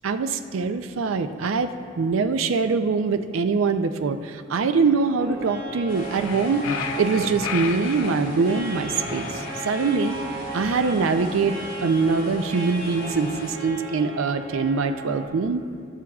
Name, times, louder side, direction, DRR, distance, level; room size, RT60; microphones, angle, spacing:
voice 1, 0.0-10.2 10.5-11.6 11.8-15.6, right 4 dB, 70° right, 9 dB, 0.4 m, -23 dB
sound 1, 5.2-15.3, right 2 dB, 90° right, 2.4 m, -36 dB
sound 2, 5.9-13.5, left 1 dB, 60° left, 2.2 m, -40 dB
sound 3, 6.0-8.2 8.8-10.1, left 6 dB, 90° left, 0.6 m, -33 dB
17.5 x 7.4 x 2.3 m, 2.3 s
head